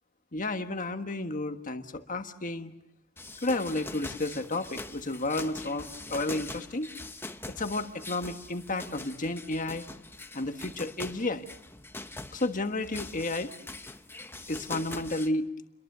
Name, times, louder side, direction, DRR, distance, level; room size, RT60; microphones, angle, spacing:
voice 1, 0.3-2.7 3.4-6.9 7.5-9.8 10.3-11.5 12.3-13.5 14.5-15.5, left 2 dB, 40° left, 7 dB, 1.5 m, -32 dB
sound 1, 3.2-15.3, left 2 dB, 10° left, 1.0 m, -43 dB
30.0 x 23.0 x 6.8 m, 0.84 s
head